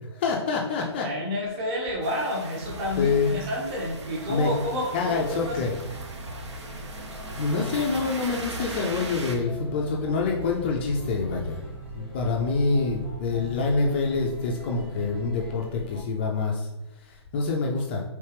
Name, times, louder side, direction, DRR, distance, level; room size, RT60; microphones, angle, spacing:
voice 1, 0.1-1.1 3.0-3.4 4.3-4.5 4.9-5.7 7.3-11.6 11.9-16.7 17.0-18.0, left 4 dB, 25° left, -1 dB, 0.4 m, -26 dB
voice 2, 1.0-5.6, left 1 dB, 25° right, -3 dB, 1.1 m, -30 dB
sound 1, 2.0-9.4, right 3 dB, 75° right, 0.9 m, -39 dB
sound 2, 2.6-16.0, left 1 dB, 5° right, 1.2 m, -41 dB
4.4 x 3.1 x 3.3 m, 0.99 s
hypercardioid pair, 160°, 15 cm